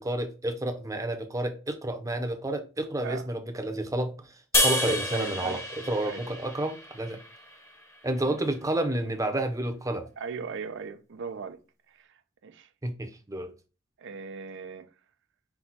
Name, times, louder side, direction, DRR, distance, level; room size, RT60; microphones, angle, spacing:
voice 1, 0.0-5.6 5.9-7.2 8.0-10.1 12.8-13.5, right 1 dB, 15° right, 0.7 m, -30 dB
sound 1, 4.5-7.8, left 1 dB, 15° left, 0.9 m, -29 dB
voice 2, 5.1-5.6 6.0-6.3 8.2-8.4 10.2-11.6 11.9-12.7 14.0-14.9, right 5 dB, 65° right, 0.5 m, -39 dB
5.8 x 2.3 x 3.9 m
head